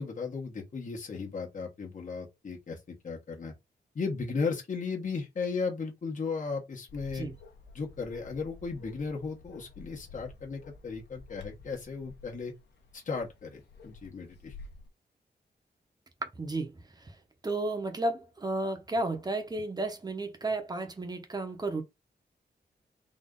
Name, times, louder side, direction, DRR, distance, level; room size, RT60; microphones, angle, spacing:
voice 1, 0.0-3.5 3.9-7.3 7.7-12.5 12.9-14.5, left 4 dB, 50° left, 1.4 m, -35 dB
Bark, 6.9-14.9, left 3 dB, 80° left, 1.2 m, -51 dB
voice 2, 16.4-16.7 17.4-21.8, right 2 dB, 25° right, 1.0 m, -32 dB
4.2 x 2.7 x 3.8 m
wide cardioid pair, 160°, 17 cm